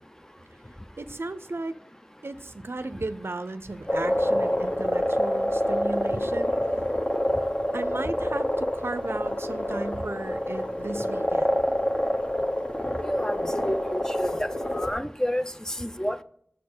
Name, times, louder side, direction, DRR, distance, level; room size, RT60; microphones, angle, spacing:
voice 1, 1.0-1.8 2.2-6.5 7.7-11.6, right 2 dB, 75° right, 12 dB, 0.4 m, -35 dB
sound 1, 3.9-14.9, equal, 35° left, 1.0 m, -27 dB
voice 2, 13.1-14.5 14.7-16.2, equal, 15° left, 11 dB, 0.5 m, -29 dB
7.2 x 4.4 x 6.6 m, 0.65 s
wide cardioid pair, 40°, 4 cm